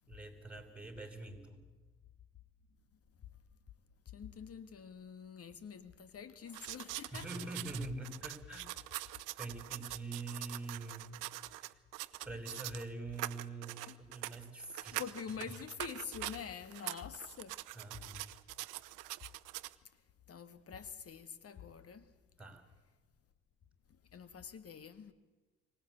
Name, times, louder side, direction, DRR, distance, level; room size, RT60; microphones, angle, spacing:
voice 1, 0.1-1.6 7.1-8.7 9.0-9.1 9.3-11.7 12.2-15.0 17.7-18.2 22.4-22.6, right 2 dB, 5° right, 6.2 m, -45 dB
voice 2, 4.1-7.5 13.9-14.0 14.9-17.6 20.3-22.1 24.1-25.1, left 7 dB, 45° left, 1.8 m, -46 dB
sound 1, 6.5-12.9 13.1-16.4 16.7-19.8, right 20 dB, 65° right, 0.9 m, -44 dB
24.5 x 18.5 x 8.3 m
figure-of-eight pair, 50°, 34 cm